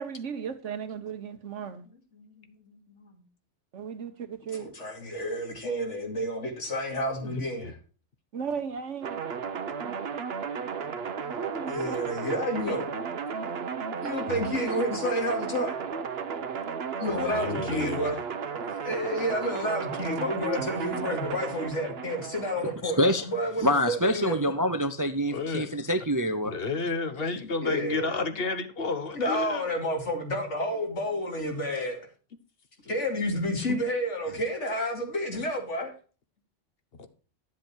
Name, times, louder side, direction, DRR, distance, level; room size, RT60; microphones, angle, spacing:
voice 1, 0.0-1.9 3.7-4.7 8.3-9.2 9.9-10.0 11.3-12.0, right 6 dB, 75° right, 1.5 m, -36 dB
voice 2, 2.1-3.2 4.6-7.7 11.6-12.9 14.0-15.8 17.0-18.2 18.8-24.5 27.6-28.1 29.1-32.0 32.8-35.9, equal, 75° left, 2.8 m, -30 dB
voice 3, 7.2-7.7 14.3-14.5 17.2-18.1 25.3-25.7 26.4-29.7 34.3-34.4 36.9-37.1, left 4 dB, 55° left, 1.3 m, -32 dB
sound 1, 9.0-22.7, right 6 dB, 60° right, 1.0 m, -34 dB
voice 4, 22.8-23.3 23.6-26.5, equal, 25° right, 0.5 m, -25 dB
10.5 x 7.7 x 4.4 m
omnidirectional pair, 1.2 m